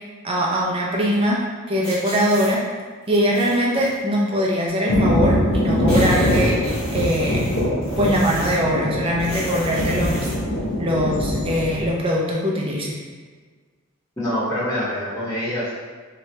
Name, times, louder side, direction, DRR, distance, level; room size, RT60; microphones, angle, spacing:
voice 1, 0.2-1.4 1.7-2.6 3.1-7.4 8.0-10.3 10.8-12.9, equal, 25° right, -3 dB, 0.5 m, -22 dB
sound 1, 1.8-2.5 3.1-3.9 4.9-5.0 5.2-5.3 5.6-8.7 9.2-10.4, equal, 50° left, 1.4 m, -33 dB
Thunder, 4.9-11.9, left 1 dB, 75° left, 0.6 m, -22 dB
voice 2, 14.2-15.7, equal, 15° left, -11 dB, 1.0 m, -25 dB
2.8 x 2.4 x 3.2 m, 1.5 s
head